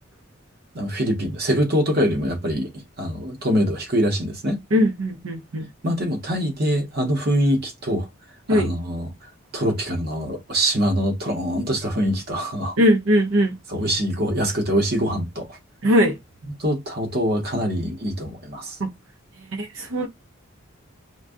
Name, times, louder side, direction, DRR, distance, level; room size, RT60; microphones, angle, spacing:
voice 1, 0.7-4.6 5.8-8.1 8.5-9.1 9.5-12.8 13.7-15.6 16.6-18.8, equal, 45° right, 0.9 m, -24 dB
voice 2, 4.7-5.7 8.5-8.7 12.8-13.5 15.8-16.1 19.6-20.1, equal, 75° right, 0.6 m, -19 dB
2.5 x 2.2 x 3.5 m
head